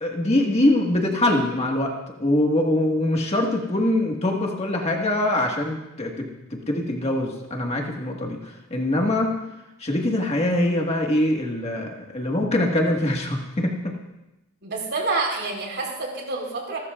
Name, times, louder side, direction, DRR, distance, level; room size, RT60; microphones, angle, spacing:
voice 1, 0.0-1.9 2.2-9.4 9.8-13.9, left 1 dB, 30° left, 1 dB, 1.7 m, -23 dB
voice 2, 14.6-16.8, right 3 dB, 55° right, 0 dB, 4.0 m, -28 dB
27.5 x 13.0 x 2.5 m, 0.96 s
head